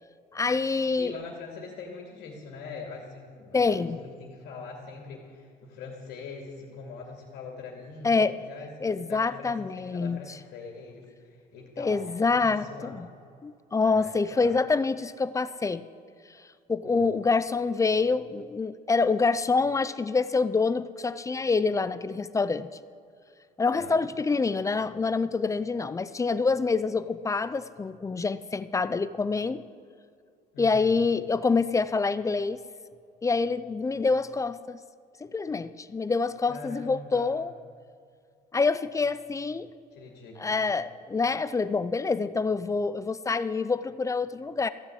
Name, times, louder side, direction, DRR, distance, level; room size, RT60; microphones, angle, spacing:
voice 1, 0.3-1.1 3.5-4.0 8.0-8.3 8.8-10.2 11.8-13.1 13.4-15.8 16.7-22.7 23.6-29.6 30.6-32.6 33.2-34.8 35.2-37.5 38.5-39.7 40.4-44.7, left 4 dB, 20° left, 14 dB, 0.4 m, -26 dB
voice 2, 1.0-13.0 13.8-14.6 16.8-17.2 23.7-24.1 30.5-31.0 36.5-37.3 39.9-40.7, left 4 dB, 75° left, 0 dB, 2.4 m, -43 dB
14.5 x 6.9 x 8.2 m, 2.3 s
cardioid pair, 110°, 17 cm